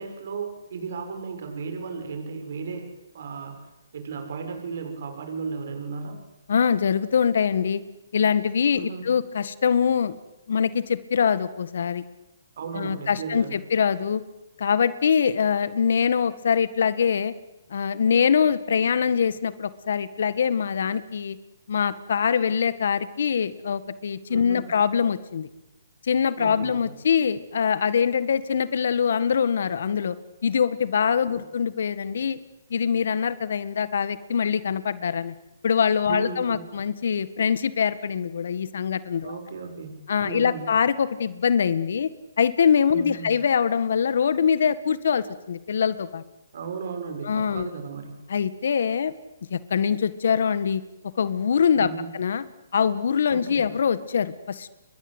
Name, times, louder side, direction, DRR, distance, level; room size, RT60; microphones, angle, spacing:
voice 1, 0.0-3.7 3.9-6.2 8.7-9.1 12.6-13.6 24.3-24.7 26.4-26.9 31.3-31.4 36.1-36.6 39.2-40.7 42.9-43.3 46.5-48.2 51.7-52.1 53.3-53.7, right 5 dB, 60° right, 6 dB, 7.0 m, -35 dB
voice 2, 6.5-7.8 8.1-10.1 10.5-12.0 12.7-14.2 14.6-17.3 17.7-21.4 21.7-25.5 26.0-30.2 30.4-32.4 32.7-35.3 35.6-39.4 40.1-42.1 42.4-46.2 47.2-47.7 48.3-49.1 49.5-50.8 51.2-51.9 52.1-52.4 52.7-54.7, left 7 dB, 65° left, 15 dB, 1.7 m, -23 dB
30.0 x 23.0 x 8.2 m, 0.96 s
hypercardioid pair, 145°, 0 cm